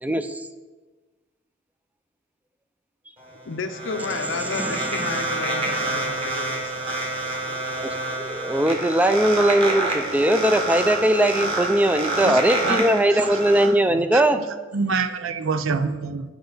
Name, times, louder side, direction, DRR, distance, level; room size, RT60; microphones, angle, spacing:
voice 1, 0.0-0.5 4.4-5.3 7.8-7.9 8.2-14.4, right 1 dB, 10° right, 9 dB, 0.4 m, -20 dB
sound 1, 3.2-13.7, right 2 dB, 30° right, 1.7 m, -28 dB
voice 2, 3.4-7.6, left 4 dB, 70° left, 9 dB, 0.6 m, -33 dB
voice 3, 12.2-12.8 13.1-13.2 13.9-14.4 14.7-16.2, right 4 dB, 80° right, 11 dB, 0.5 m, -26 dB
9.1 x 5.3 x 3.9 m, 1.2 s
head